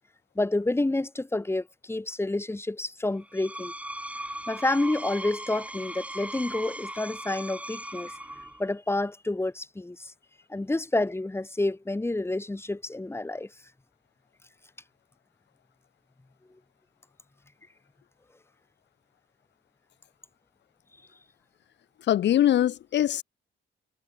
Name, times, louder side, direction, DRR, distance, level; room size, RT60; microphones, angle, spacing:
voice 1, 0.4-3.7 4.5-8.2 8.6-10.1 10.5-13.5, left 2 dB, 10° left, 2.0 m, -29 dB
Screech, 3.2-8.7, right 1 dB, 5° right, 3.9 m, -38 dB
voice 2, 22.1-23.2, left 11 dB, 60° left, 0.8 m, -22 dB
cardioid pair, 90°, 20 cm